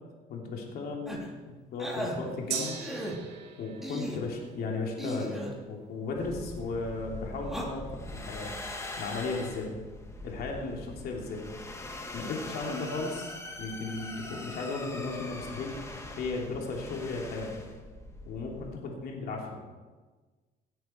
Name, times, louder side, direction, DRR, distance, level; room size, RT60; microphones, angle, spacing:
voice 1, 0.3-2.8 3.6-8.5 9.0-9.7 10.2-11.4 12.1-15.7 16.2-17.5 18.2-19.6, left 3 dB, 65° left, 0 dB, 3.0 m, -35 dB
sound 1, 1.1-1.3 1.8-2.2 2.8-3.1 3.8-4.2 5.0-5.5 7.4-7.6, equal, ahead, 3.0 m, -36 dB
Gong, 2.5-10.3 10.6-10.7, right 7 dB, 75° right, 2.4 m, -44 dB
sound 2, 6.2-18.7, left 2 dB, 15° left, 1.9 m, -42 dB
17.5 x 10.5 x 4.5 m, 1.3 s
cardioid pair, 110°, 17 cm